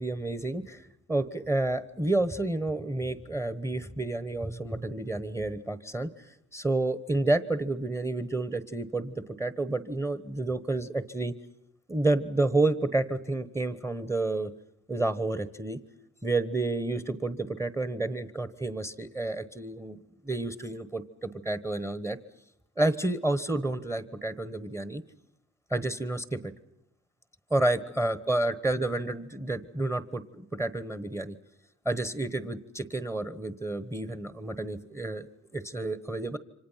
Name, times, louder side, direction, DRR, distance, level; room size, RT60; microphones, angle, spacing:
voice 1, 0.0-11.3 11.9-14.5 14.9-15.8 16.2-20.0 20.2-22.2 22.8-25.0 25.7-26.5 27.5-31.4 31.8-35.3 35.5-36.4, right 2 dB, 10° right, 13 dB, 1.2 m, -30 dB
28.5 x 25.5 x 5.8 m, 0.79 s
cardioid pair, 90°, 30 cm